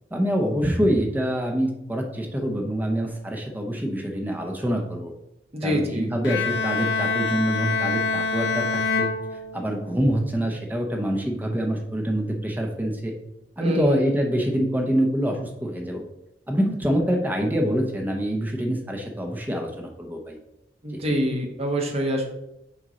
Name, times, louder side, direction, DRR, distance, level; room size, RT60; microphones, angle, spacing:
voice 1, 0.1-5.1 5.6-9.1 9.5-13.1 13.6-16.0 16.5-20.4 20.9-21.0, equal, 10° right, 2 dB, 0.8 m, -25 dB
voice 2, 5.5-6.1 13.6-14.0 20.8-22.3, equal, 35° right, 1 dB, 1.1 m, -25 dB
Bowed string instrument, 6.2-10.0, left 4 dB, 70° left, 0.9 m, -26 dB
6.3 x 4.3 x 3.9 m, 0.85 s
head